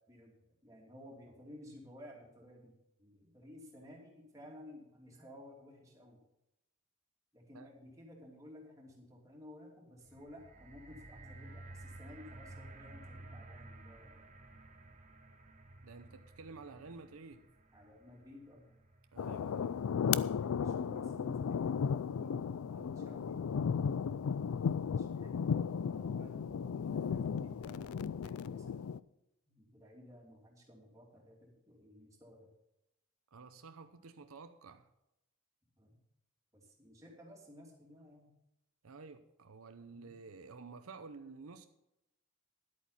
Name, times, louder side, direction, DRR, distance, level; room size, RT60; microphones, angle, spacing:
voice 1, 0.6-2.7 3.0-6.2 7.3-14.3 17.7-18.7 20.2-28.9 29.5-32.5 35.8-36.0 36.5-38.3 39.9-40.2, left 1 dB, 15° right, 2.9 m, -55 dB
sound 1, 10.0-20.2 21.0-21.1, right 2 dB, 35° right, 1.1 m, -54 dB
voice 2, 15.8-17.5 19.1-19.8 33.3-34.9 38.8-41.7, right 4 dB, 80° right, 0.7 m, -51 dB
sound 2, 19.2-29.0, left 7 dB, 85° left, 0.4 m, -35 dB
11.0 x 8.5 x 5.7 m
head